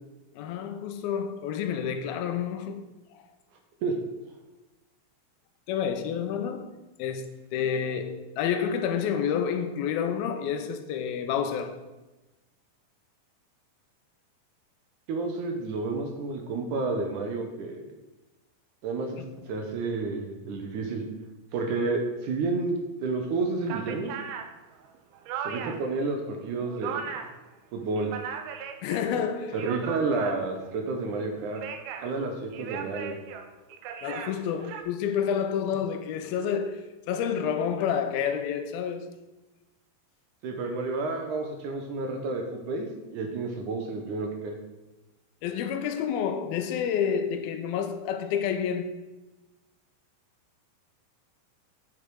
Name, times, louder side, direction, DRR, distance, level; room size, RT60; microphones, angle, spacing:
voice 1, 0.4-2.9 3.1-3.3 5.7-6.7 7.0-11.8 28.8-29.6 34.0-39.1 45.4-49.0, left 7 dB, 90° left, 2.6 m, -29 dB
voice 2, 15.1-17.8 18.8-19.2 19.5-21.0 21.5-24.1 25.4-27.1 27.7-28.1 29.5-31.6 32.0-33.2 40.4-44.6, right 3 dB, 70° right, 2.2 m, -30 dB
sound 1, 23.2-23.3 23.6-26.0 26.3-27.4 27.8-29.0 29.4-30.7 31.4-32.2 32.5-34.8, right 7 dB, 85° right, 2.7 m, -37 dB
8.7 x 7.2 x 4.7 m
omnidirectional pair, 4.3 m